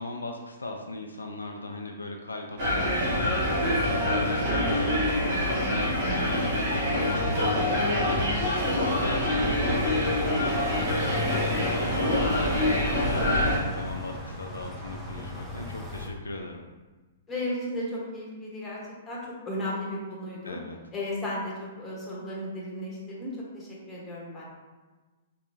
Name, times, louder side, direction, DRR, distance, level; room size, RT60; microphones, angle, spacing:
voice 1, 0.0-16.6 20.4-20.8, left 1 dB, 75° left, 2 dB, 0.3 m, -38 dB
sound 1, 2.6-13.6, left 1 dB, 45° right, 1.1 m, -26 dB
voice 2, 6.0-6.3 9.3-9.5 17.3-20.6 20.9-24.4, left 1 dB, 15° left, -5 dB, 1.0 m, -35 dB
sound 2, 7.1-16.1, equal, 5° right, 0.6 m, -36 dB
3.5 x 2.9 x 2.7 m, 1.3 s
figure-of-eight pair, 110°, 0 cm